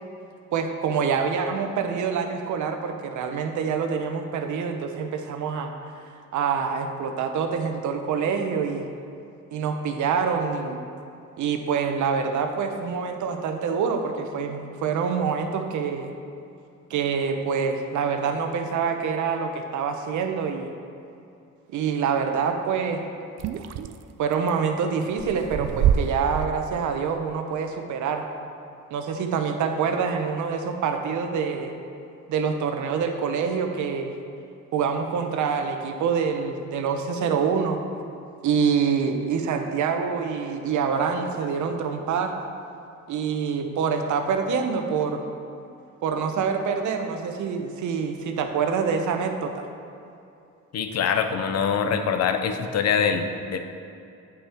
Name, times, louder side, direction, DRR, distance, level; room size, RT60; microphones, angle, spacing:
voice 1, 0.5-5.7 6.3-8.8 9.5-10.8 11.4-16.1 16.9-20.7 21.7-23.0 24.2-28.2 28.9-31.7 32.3-34.1 34.7-37.8 38.4-42.3 43.1-45.2 46.0-49.6, right 6 dB, 75° right, 5 dB, 0.8 m, -26 dB
sound 1, 23.4-24.5 25.1-26.5, right 9 dB, 55° right, 0.4 m, -25 dB
voice 2, 50.7-53.6, left 6 dB, 60° left, 7 dB, 0.7 m, -24 dB
8.3 x 5.6 x 4.4 m, 2.6 s
cardioid pair, 90°, 30 cm